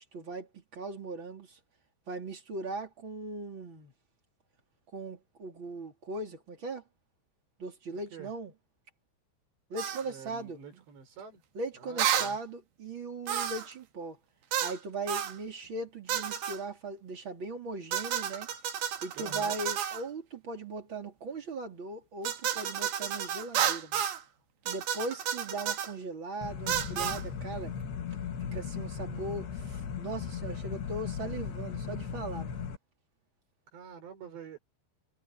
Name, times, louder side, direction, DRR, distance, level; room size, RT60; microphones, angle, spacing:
voice 1, 0.0-1.6 2.1-3.9 4.9-6.8 7.6-8.5 9.7-10.8 11.5-14.2 14.6-18.5 19.0-24.0 24.7-27.7 28.4-32.7, right 2 dB, 30° right, 3.7 m, -39 dB
voice 2, 7.9-8.3 10.0-11.4 11.8-12.4 19.2-19.6 33.7-34.6, right 6 dB, 90° right, 7.3 m, -47 dB
sound 1, 9.8-10.0 12.0-12.3 13.3-13.7 14.5-14.8 15.1-15.4 16.1-16.6 17.9-20.0 22.2-24.2 24.7-25.9 26.7-27.2, right 10 dB, 65° right, 3.5 m, -31 dB
sound 2, 26.4-32.8, left 7 dB, 75° left, 4.3 m, -37 dB
omnidirectional pair, 4.8 m